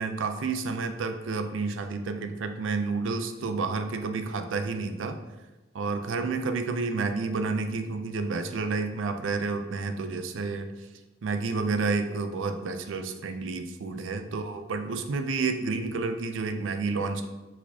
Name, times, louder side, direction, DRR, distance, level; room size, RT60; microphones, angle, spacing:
voice 1, 0.0-5.2 5.7-10.7 11.2-17.3, right 4 dB, 80° right, 8 dB, 0.4 m, -30 dB
4.7 x 4.2 x 2.7 m, 1.1 s
head